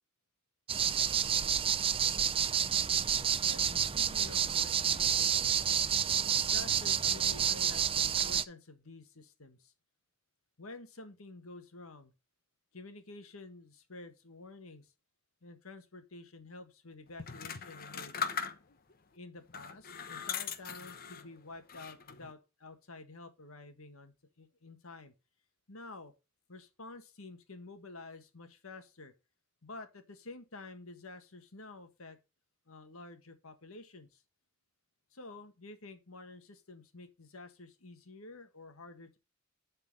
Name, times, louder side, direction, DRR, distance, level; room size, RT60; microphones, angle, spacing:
sound 1, 0.7-8.4, right 8 dB, 25° right, 0.4 m, -29 dB
voice 1, 3.4-5.4 6.3-9.7 10.6-12.1 12.7-14.9 15.4-18.2 19.1-25.1 25.7-26.1 26.5-29.1 29.6-32.2 32.7-34.2 35.1-39.2, left 2 dB, 85° left, 1.7 m, -50 dB
sound 2, 17.2-18.9 19.5-21.3 21.7-22.3, left 6 dB, 45° left, 1.0 m, -39 dB
11.5 x 4.4 x 5.4 m
head